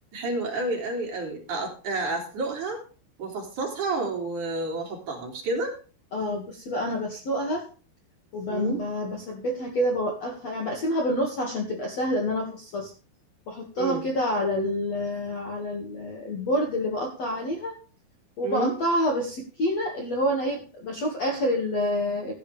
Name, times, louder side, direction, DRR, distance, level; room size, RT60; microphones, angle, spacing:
voice 1, 0.1-2.8 3.2-5.7 8.5-8.8 13.8-14.0 18.4-18.7, right 3 dB, 45° right, 1 dB, 4.1 m, -30 dB
voice 2, 6.1-7.7 8.3-12.9 13.5-17.7 18.4-22.3, left 1 dB, 50° left, 2 dB, 2.3 m, -28 dB
16.0 x 10.0 x 3.4 m, 0.35 s
omnidirectional pair, 5.3 m